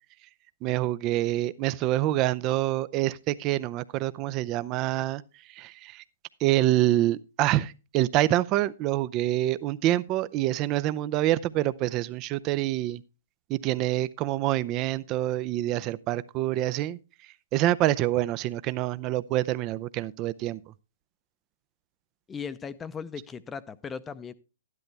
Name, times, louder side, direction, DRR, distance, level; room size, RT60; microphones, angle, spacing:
voice 1, 0.6-5.2 5.6-6.0 6.4-13.0 13.5-17.0 17.5-20.6, right 15 dB, 30° right, 0.5 m, -26 dB
voice 2, 22.3-24.3, left 6 dB, 15° left, 0.7 m, -37 dB
12.0 x 10.5 x 3.3 m
hypercardioid pair, 130°, 0 cm